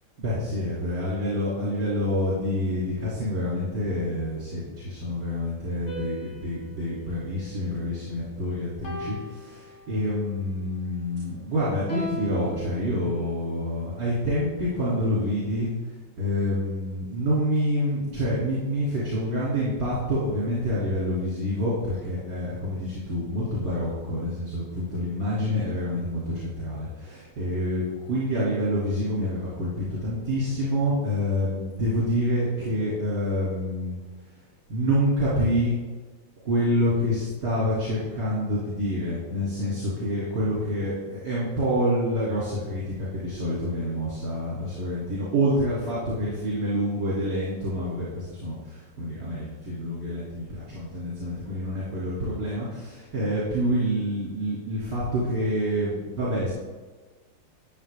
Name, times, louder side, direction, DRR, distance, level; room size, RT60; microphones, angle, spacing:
voice 1, 0.2-15.7 16.2-34.0 34.7-35.7 36.4-56.5, equal, 50° right, -9 dB, 3.7 m, -27 dB
sound 1, 5.9-8.3 8.8-10.3 11.9-13.6, left 1 dB, 40° left, 1.5 m, -39 dB
13.0 x 8.8 x 3.7 m, 1.3 s
omnidirectional pair, 2.3 m